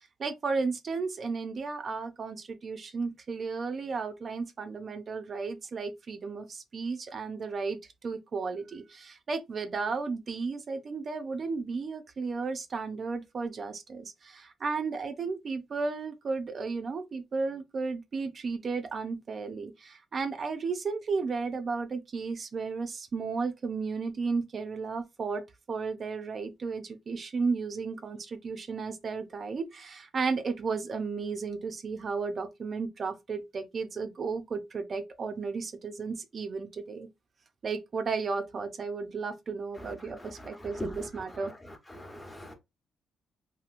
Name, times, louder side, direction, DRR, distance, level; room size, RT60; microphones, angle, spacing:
voice 1, 0.2-25.4 25.7-37.1 37.6-41.5, right 4 dB, 45° right, 0.5 m, -34 dB
voice 2, 41.9-42.5, left 1 dB, 15° left, 1.0 m, -40 dB
2.9 x 2.6 x 2.5 m
cardioid pair, 90°, 0 cm